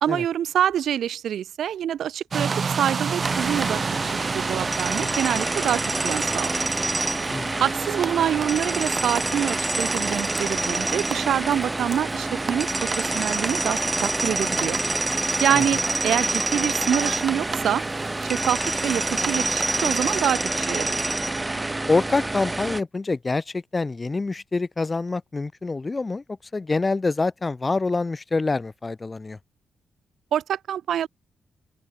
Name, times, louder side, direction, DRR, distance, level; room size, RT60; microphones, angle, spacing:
voice 1, 0.0-6.7 7.6-14.8 15.4-17.8 18.2-21.0 30.3-31.1, right 10 dB, 85° right, 0.8 m, -26 dB
sound 1, 2.3-20.2, right 5 dB, 40° right, 4.4 m, -33 dB
sound 2, 3.2-22.8, right 2 dB, 15° right, 1.0 m, -27 dB
voice 2, 7.3-7.6 15.5-15.6 21.9-26.2 26.5-29.4, left 3 dB, 20° left, 0.6 m, -26 dB
open air
wide cardioid pair, 155°, 0 cm